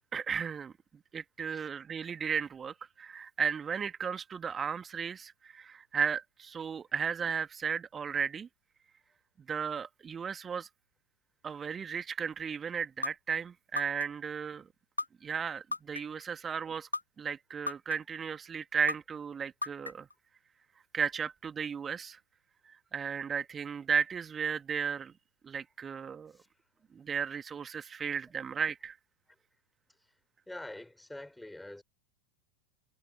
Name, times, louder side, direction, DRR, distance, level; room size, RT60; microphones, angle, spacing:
voice 1, 0.1-0.7 1.1-8.5 9.5-10.7 11.4-14.6 15.2-16.9 17.2-20.1 20.9-22.2 22.7-25.1 25.4-26.3 26.9-29.0, right 7 dB, 20° right, 2.4 m, -35 dB
sound 1, 13.0-13.1 13.8-14.3 15.0-15.1 15.7-16.2 16.9-17.0 17.7-18.2 18.9-19.0 19.6-20.1, left 3 dB, 80° left, 0.6 m, -33 dB
voice 2, 30.5-31.8, left 1 dB, 5° left, 6.2 m, -45 dB
figure-of-eight pair, 90°, 0 cm